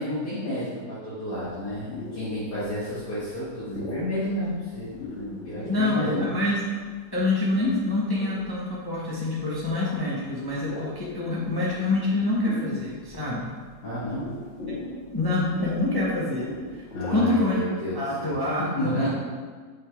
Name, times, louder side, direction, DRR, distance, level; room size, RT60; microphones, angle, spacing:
voice 1, 0.0-4.9 5.1-6.3 13.8-14.3 16.9-18.4 18.7-19.1, equal, 80° left, -12 dB, 2.2 m, -31 dB
sound 1, 1.4-17.5, left 2 dB, 45° left, 1.7 m, -41 dB
voice 2, 5.6-6.6 7.1-13.5 15.1-16.8 17.1-17.6 17.9-19.1, left 2 dB, 20° left, -6 dB, 0.9 m, -26 dB
6.3 x 4.1 x 4.5 m, 1.5 s
omnidirectional pair, 1.7 m